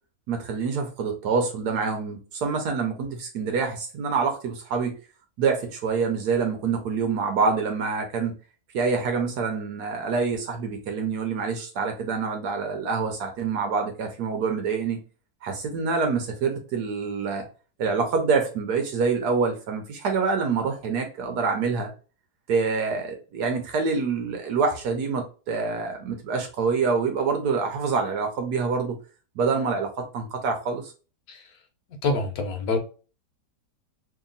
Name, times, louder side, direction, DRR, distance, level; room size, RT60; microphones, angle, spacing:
voice 1, 0.3-5.0 5.4-8.3 8.7-15.0 15.4-17.4 17.8-21.9 22.5-29.0 29.4-30.9, right 5 dB, 75° right, 4 dB, 1.2 m, -26 dB
voice 2, 32.0-32.8, left 3 dB, 65° left, 4 dB, 1.2 m, -26 dB
2.9 x 2.8 x 3.8 m, 0.36 s
omnidirectional pair, 1.8 m